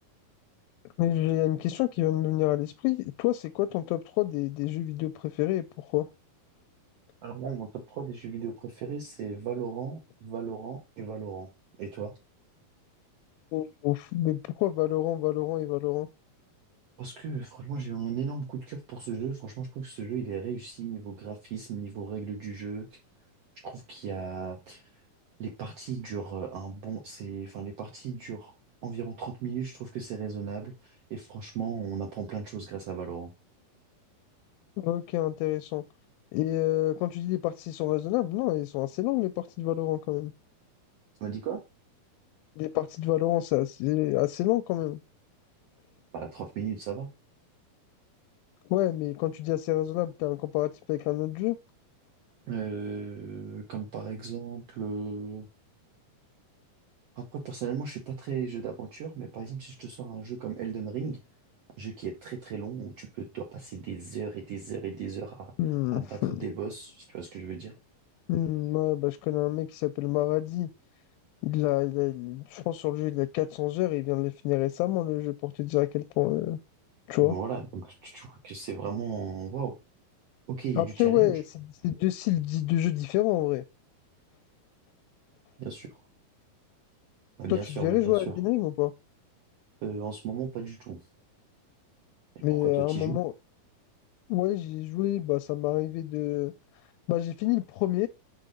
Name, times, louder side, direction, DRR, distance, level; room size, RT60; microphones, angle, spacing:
voice 1, 1.0-6.1 13.5-16.1 34.8-35.8 36.3-40.3 42.6-45.0 48.7-51.6 65.6-66.4 68.3-70.7 71.4-76.6 77.1-77.4 80.8-83.6 87.5-88.9 92.4-93.3 94.3-96.5 97.1-98.1, left 16 dB, 85° left, 2.3 m, -28 dB
voice 2, 7.2-11.5 11.8-12.1 17.0-22.9 23.6-24.8 25.4-28.5 28.8-33.3 41.2-41.6 46.1-47.1 52.5-55.5 57.2-61.2 61.8-65.5 65.9-67.7 77.2-79.7 80.5-81.4 85.6-86.0 87.4-88.4 89.8-91.0 92.5-93.2, right 6 dB, 75° right, 1.4 m, -36 dB
6.1 x 3.8 x 5.1 m
omnidirectional pair, 4.2 m